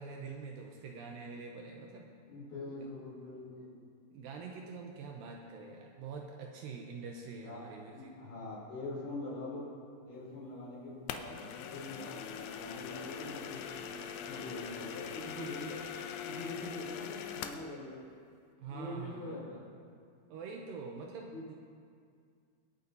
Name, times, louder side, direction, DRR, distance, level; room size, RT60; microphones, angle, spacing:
voice 1, 0.0-2.1 4.1-8.1 18.6-19.4 20.3-21.6, right 5 dB, 75° right, 1 dB, 2.4 m, -45 dB
voice 2, 2.3-3.8 7.3-9.6 10.1-15.8 16.2-18.0 18.7-19.7 21.3-21.6, left 2 dB, 60° left, -5 dB, 4.8 m, -44 dB
sound 1, 11.1-17.7, left 8 dB, 85° left, 2.5 m, -42 dB
25.5 x 8.7 x 2.8 m, 2.2 s
omnidirectional pair, 4.2 m